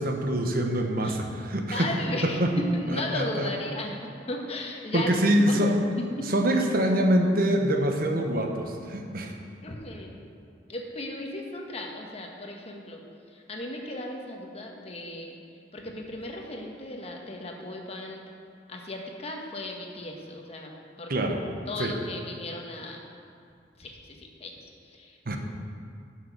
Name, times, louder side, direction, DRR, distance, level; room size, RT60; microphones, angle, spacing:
voice 1, 0.0-1.9 2.2-2.5 2.9-3.5 4.9-5.7 6.3-9.3 21.1-21.4 21.8-21.9 25.3-25.4, right 1 dB, 55° right, 3 dB, 1.0 m, -25 dB
voice 2, 1.7-5.1 5.5-5.6 6.2-6.3 9.6-10.2 10.7-13.0 13.3-15.4 15.7-18.3 18.7-20.7 21.0-21.1 21.7-23.0 23.8-25.2, left 1 dB, 35° left, 1 dB, 1.3 m, -36 dB
11.5 x 6.1 x 6.0 m, 2.3 s
head